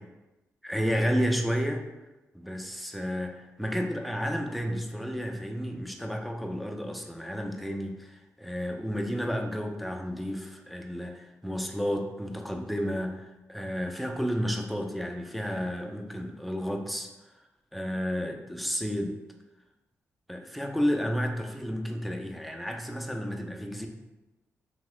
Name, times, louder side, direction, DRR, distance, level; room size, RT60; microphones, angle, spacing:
voice 1, 0.6-1.9 2.3-17.1 17.7-19.2 20.3-23.9, equal, ahead, 3 dB, 0.4 m, -31 dB
3.0 x 2.9 x 2.3 m, 1.0 s
supercardioid pair, 55°, 6 cm